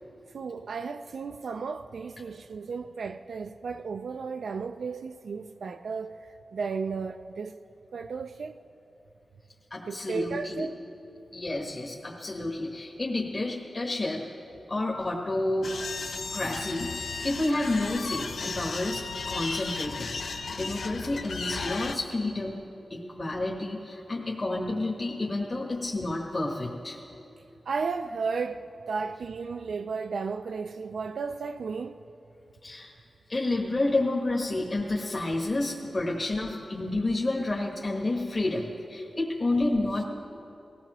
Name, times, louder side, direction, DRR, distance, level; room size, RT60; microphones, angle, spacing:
voice 1, 0.3-6.2 6.5-7.6 7.9-8.6 9.9-10.8 27.7-32.0, right 5 dB, 80° right, 0.3 m, -34 dB
voice 2, 9.7-10.7 11.3-14.2 14.7-22.6 22.9-27.0 32.6-32.9 33.3-40.0, left 2 dB, 35° left, 1.3 m, -30 dB
sound 1, 15.6-21.9, left 4 dB, 70° left, 0.6 m, -35 dB
19.5 x 16.0 x 3.0 m
wide cardioid pair, 110°, 0 cm